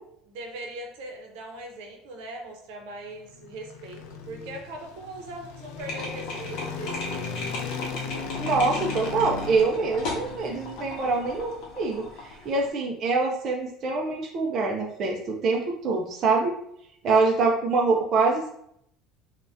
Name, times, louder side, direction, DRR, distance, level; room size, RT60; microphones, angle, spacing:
voice 1, 0.3-7.3, right 2 dB, 75° right, 3 dB, 0.6 m, -40 dB
sound 1, 3.1-11.6, left 6 dB, 80° left, 0.4 m, -37 dB
sound 2, 5.8-12.7, left 2 dB, 45° left, 0.7 m, -36 dB
voice 2, 8.4-16.5 17.0-18.5, right 4 dB, 35° right, 0 dB, 0.3 m, -25 dB
2.6 x 2.1 x 3.3 m, 0.71 s
cardioid pair, 175°, 0 cm